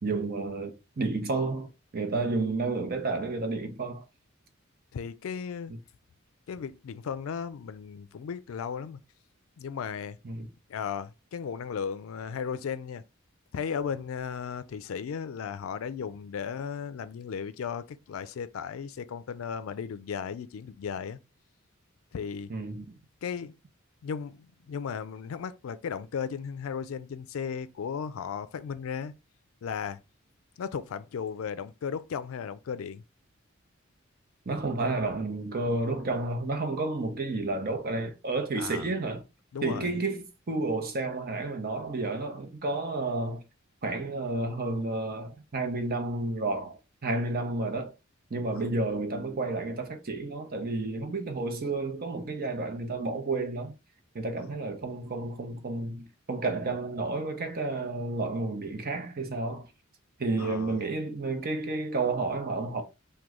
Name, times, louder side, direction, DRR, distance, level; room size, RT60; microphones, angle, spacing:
voice 1, 0.0-4.0 10.2-10.5 22.5-23.0 34.5-39.2 39.6-43.4 43.8-47.9 48.3-53.7 54.1-59.7 60.2-62.8, right 3 dB, 50° right, 0.7 m, -31 dB
voice 2, 4.9-5.7 6.5-9.0 9.6-10.2 10.7-13.0 13.5-21.2 22.1-22.5 23.2-23.5 24.0-29.1 29.6-30.0 30.6-33.0 38.6-38.9 39.5-39.9 48.6-48.7 60.4-60.8, left 7 dB, 80° left, 0.4 m, -35 dB
3.0 x 2.2 x 3.5 m
head